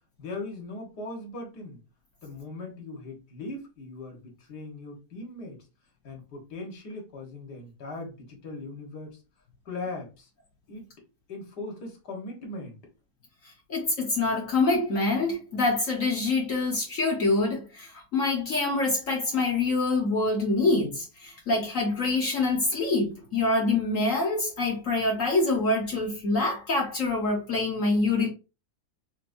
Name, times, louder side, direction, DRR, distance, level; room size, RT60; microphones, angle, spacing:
voice 1, 0.2-1.8 2.2-5.6 6.0-9.2 9.7-10.3 10.7-10.9 11.3-12.8, left 2 dB, 85° left, 2.0 m, -39 dB
voice 2, 13.7-28.3, left 3 dB, 55° left, 1.5 m, -25 dB
5.9 x 2.9 x 2.6 m
omnidirectional pair, 1.7 m